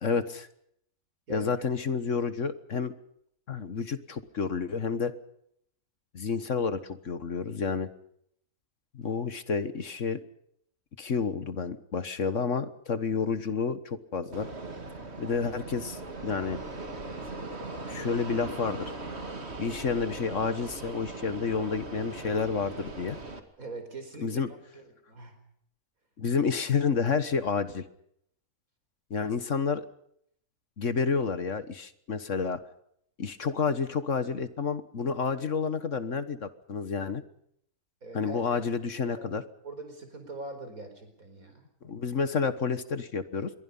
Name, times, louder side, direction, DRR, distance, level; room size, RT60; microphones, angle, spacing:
voice 1, 0.0-0.5 1.3-2.9 3.5-5.1 6.1-7.9 8.9-10.2 11.0-14.5 15.2-16.6 17.9-18.9 19.6-23.2 24.2-24.5 26.2-27.8 29.1-29.8 30.8-32.6 33.2-37.2 38.1-39.4 41.8-43.5, left 5 dB, 55° left, 12 dB, 1.7 m, -30 dB
voice 2, 1.3-1.7 23.6-24.4 24.7-25.4 38.0-38.7 39.0-39.3 39.6-41.6, right 2 dB, 70° right, 7 dB, 5.2 m, -43 dB
Fixed-wing aircraft airplane, 14.3-23.4, right 2 dB, 45° right, 2.7 m, -39 dB
26.5 x 23.0 x 5.5 m, 0.71 s
omnidirectional pair, 1.5 m